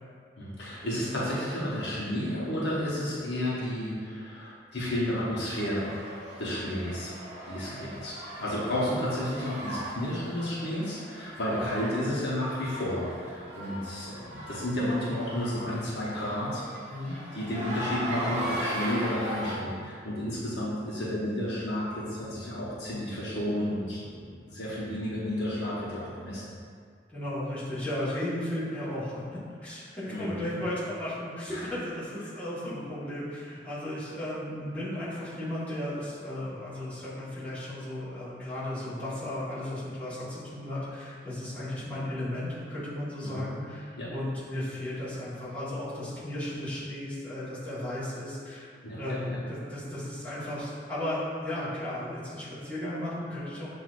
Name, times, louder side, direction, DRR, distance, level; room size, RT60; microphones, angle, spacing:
voice 1, 0.4-5.9 6.4-7.2 7.5-16.6 17.1-26.4 30.1-30.3 31.5-31.7 43.2-43.5 44.0-44.1 48.8-49.4, left 1 dB, 65° left, -7 dB, 1.0 m, -32 dB
sound 1, 5.5-19.6, right 1 dB, 35° right, 1.1 m, -39 dB
voice 2, 11.5-12.1 16.9-17.1 27.1-48.7 48.9-53.7, left 1 dB, 10° left, -13 dB, 1.4 m, -35 dB
7.5 x 2.6 x 2.5 m, 2.1 s
head